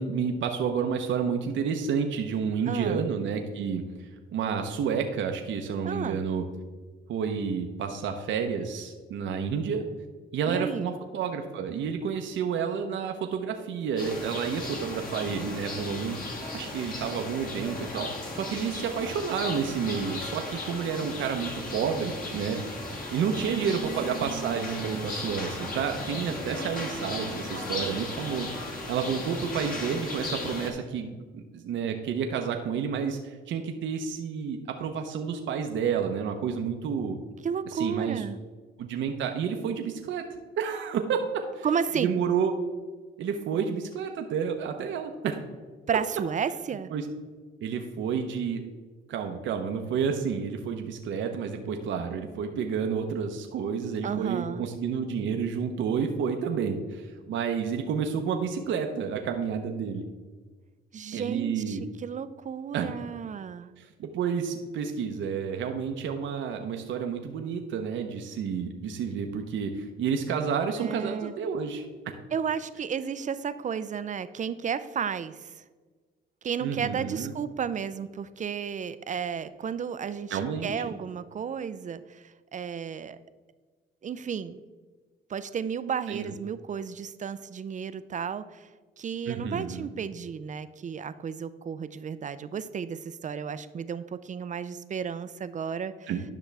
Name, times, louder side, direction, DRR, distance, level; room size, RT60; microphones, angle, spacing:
voice 1, 0.0-6.4 7.1-9.8 10.3-22.6 23.1-28.5 28.9-37.2 37.7-38.2 38.8-40.2 40.6-41.7 42.0-42.6 43.2-45.4 46.9-47.1 47.6-48.6 49.1-60.0 61.1-61.8 62.7-62.9 63.8-71.8 76.6-77.3 80.3-80.9 86.1-86.3 89.3-89.9 96.1-96.2, right 6 dB, 70° right, 4 dB, 0.8 m, -30 dB
voice 2, 2.7-3.1 5.8-6.2 10.5-10.9 23.5-25.2 37.4-38.4 41.6-42.2 45.9-46.9 54.0-54.6 60.9-63.7 70.8-71.3 72.3-75.6 76.4-83.2 84.0-84.6 85.3-88.7 89.0-96.1, right 7 dB, 40° right, 13 dB, 0.4 m, -33 dB
sound 1, 14.0-30.7, left 2 dB, 45° left, 2.0 m, -36 dB
10.5 x 6.0 x 3.4 m, 1.4 s
cardioid pair, 90°, 20 cm